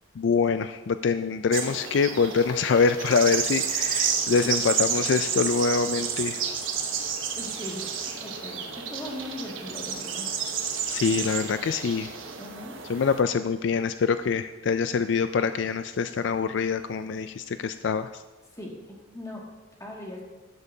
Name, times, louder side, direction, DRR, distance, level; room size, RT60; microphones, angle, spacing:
voice 1, 0.2-6.4 10.9-12.1 12.9-18.1, left 5 dB, 65° left, 11 dB, 0.4 m, -25 dB
sound 1, 1.5-13.2, right 7 dB, 90° right, 1.1 m, -30 dB
voice 2, 7.3-7.8 8.2-10.3 12.3-12.8 18.5-19.4 19.8-20.2, left 1 dB, 15° left, -2 dB, 2.1 m, -39 dB
12.0 x 11.5 x 2.8 m, 1.1 s
head